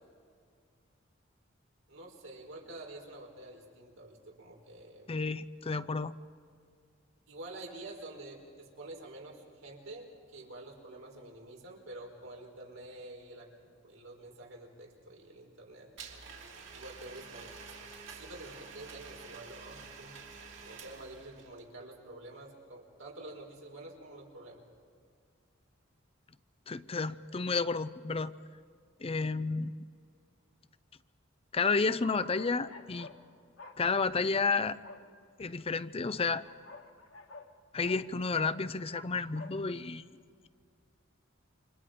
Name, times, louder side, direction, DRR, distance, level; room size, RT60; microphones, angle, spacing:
voice 1, 1.9-5.1 7.3-15.9 16.7-17.6 18.1-20.2 20.7-24.6, right 2 dB, 90° right, 0 dB, 4.7 m, -48 dB
voice 2, 5.1-6.2 26.7-28.3 29.0-29.7 31.5-33.1 33.8-34.8 35.4-36.4 37.7-40.1, left 4 dB, 30° left, 14 dB, 0.5 m, -31 dB
Domestic sounds home sounds, 16.0-21.6, right 5 dB, 65° right, 3.1 m, -49 dB
sound 1, 31.7-33.2 33.6-33.8 34.8-35.0 36.1-37.5 37.8-38.0 38.4-39.5, left 3 dB, 70° left, 2.1 m, -50 dB
29.0 x 26.0 x 5.1 m, 2.1 s
head